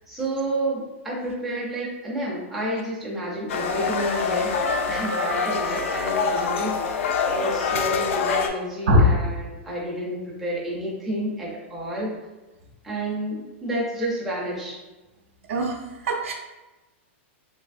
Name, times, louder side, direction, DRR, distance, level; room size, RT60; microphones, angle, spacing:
voice 1, 0.1-6.8 7.3-12.2 12.8-14.8, right 1 dB, ahead, -7 dB, 0.4 m, -30 dB
sound 1, 3.5-8.5, left 5 dB, 75° left, 0.4 m, -25 dB
voice 2, 8.9-9.1 15.5-15.8 16.0-16.3, left 1 dB, 75° right, 2 dB, 0.5 m, -19 dB
3.2 x 2.6 x 2.5 m, 1.1 s
supercardioid pair, 180°, 7 cm